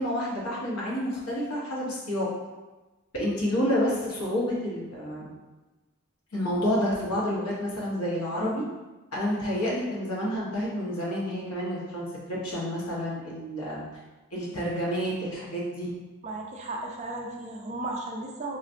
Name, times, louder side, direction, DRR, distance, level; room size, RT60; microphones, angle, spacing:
voice 1, 0.0-2.3 3.1-5.3 6.3-8.6 9.1-13.8 14.3-15.9, equal, 85° left, -5 dB, 1.0 m, -29 dB
voice 2, 16.2-18.6, right 2 dB, 30° right, 0 dB, 0.3 m, -35 dB
4.4 x 2.4 x 2.5 m, 1.2 s
head